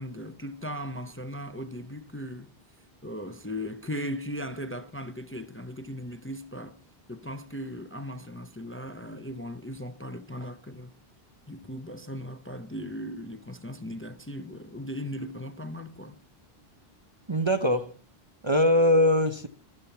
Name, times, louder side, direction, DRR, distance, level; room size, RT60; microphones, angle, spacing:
voice 1, 0.0-2.5 3.0-6.8 7.1-10.9 11.5-16.2, equal, 15° left, 0.8 m, -38 dB
voice 2, 17.3-17.9 18.4-19.5, left 1 dB, 30° right, 0.8 m, -22 dB
14.5 x 12.0 x 4.4 m
omnidirectional pair, 1.1 m